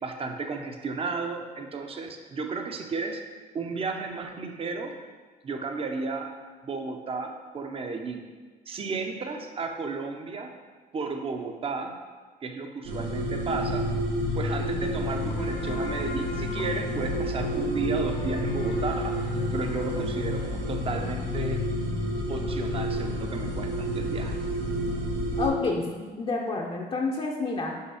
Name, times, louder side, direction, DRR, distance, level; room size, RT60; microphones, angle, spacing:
voice 1, 0.0-3.2 3.5-5.0 5.4-8.2 8.7-10.6 10.9-12.0 12.4-13.9 14.3-21.7 22.3-24.4, right 4 dB, 35° right, 5 dB, 0.8 m, -33 dB
sound 1, 12.9-25.5, equal, 80° right, 1.6 m, -29 dB
sound 2, 15.3-22.6, left 3 dB, 55° left, 1.0 m, -41 dB
voice 2, 25.4-27.8, left 3 dB, 35° left, 0 dB, 0.7 m, -29 dB
5.6 x 5.3 x 4.9 m, 1.4 s
cardioid pair, 110°, 17 cm